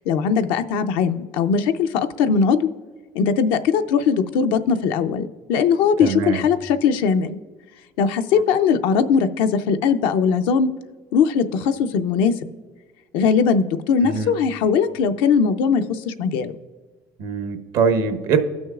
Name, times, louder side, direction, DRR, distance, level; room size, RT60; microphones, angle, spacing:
voice 1, 0.1-2.7 3.1-7.4 8.0-10.7 11.1-12.3 13.1-16.5, left 6 dB, 80° left, 8 dB, 0.5 m, -20 dB
voice 2, 6.0-6.4 14.0-14.3 17.2-18.4, right 6 dB, 80° right, 6 dB, 1.0 m, -22 dB
16.5 x 6.2 x 2.4 m, 1.4 s
supercardioid pair, 80°, 8 cm